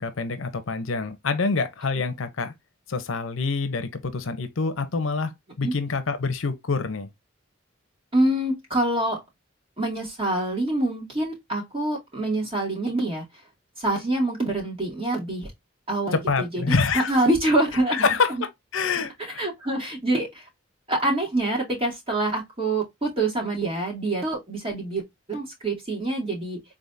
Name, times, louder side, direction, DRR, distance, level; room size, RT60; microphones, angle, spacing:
voice 1, 0.0-2.5 2.9-7.1 16.1-17.2 17.9-18.4 18.7-19.5, left 4 dB, 85° left, 0.7 m, -26 dB
voice 2, 8.1-9.2 9.8-13.3 13.8-15.5 15.9-18.4 18.9-20.5 20.9-25.0 25.3-26.6, right 1 dB, 30° right, 2.3 m, -26 dB
3.9 x 3.6 x 2.6 m
head